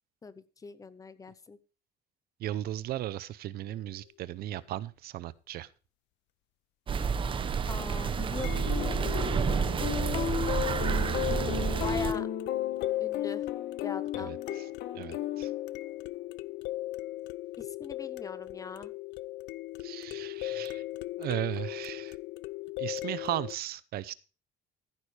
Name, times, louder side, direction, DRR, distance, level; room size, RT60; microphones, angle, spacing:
voice 1, 0.2-1.6 7.7-9.4 11.8-12.3 13.0-13.5 13.8-14.3 17.6-18.9, left 4 dB, 20° left, 0.8 m, -41 dB
voice 2, 2.4-5.7 14.2-14.7 14.9-15.5 19.8-20.8 21.2-22.2 22.8-24.1, right 13 dB, 60° right, 0.7 m, -36 dB
sound 1, 3.7-3.8 8.4-23.6, left 17 dB, 80° left, 0.6 m, -38 dB
sound 2, 6.9-12.1, right 6 dB, 30° right, 1.0 m, -29 dB
sound 3, 8.7-16.1, left 11 dB, 60° left, 2.2 m, -35 dB
14.5 x 11.0 x 3.3 m
cardioid pair, 155°, 18 cm